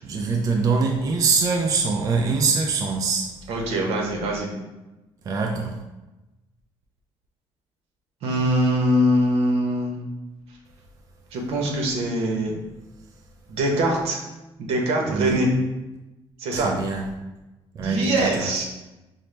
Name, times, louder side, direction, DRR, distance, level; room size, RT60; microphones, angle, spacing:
voice 1, 0.0-3.3 5.2-5.8 15.1-15.4 16.5-17.1 17.7-18.6, right 4 dB, 35° right, 1 dB, 0.4 m, -24 dB
voice 2, 3.5-4.5 8.2-9.9 11.3-12.6 13.5-14.2 14.6-15.5 16.4-16.7 17.8-18.6, right 1 dB, 80° right, 1 dB, 0.9 m, -23 dB
5.3 x 2.0 x 3.2 m, 1.0 s
cardioid pair, 155°, 10 cm